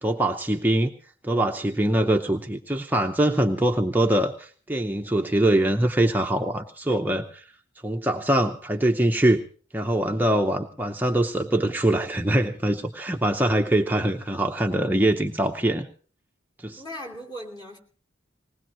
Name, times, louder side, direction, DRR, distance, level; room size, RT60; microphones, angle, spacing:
voice 1, 0.0-0.9 1.2-7.5 7.8-9.4 9.7-15.9 16.6-16.8, right 1 dB, 10° right, 0.7 m, -23 dB
voice 2, 16.8-17.8, equal, 20° left, 2.7 m, -38 dB
20.5 x 19.0 x 3.0 m
head